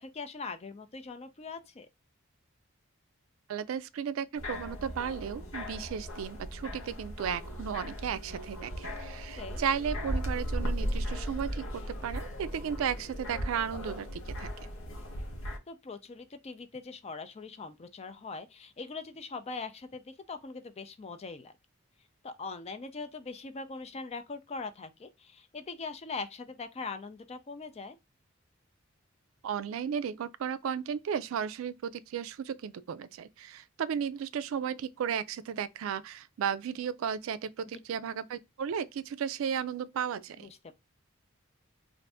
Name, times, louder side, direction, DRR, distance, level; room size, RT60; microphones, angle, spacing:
voice 1, 0.0-1.9 9.2-9.6 15.7-21.5 22.2-28.0 40.4-40.8, left 4 dB, 30° left, 0.4 m, -41 dB
voice 2, 3.5-14.5 29.4-40.5, right 7 dB, 75° right, 0.3 m, -34 dB
sound 1, 4.4-15.6, equal, 75° left, 0.9 m, -37 dB
2.5 x 2.5 x 3.3 m
head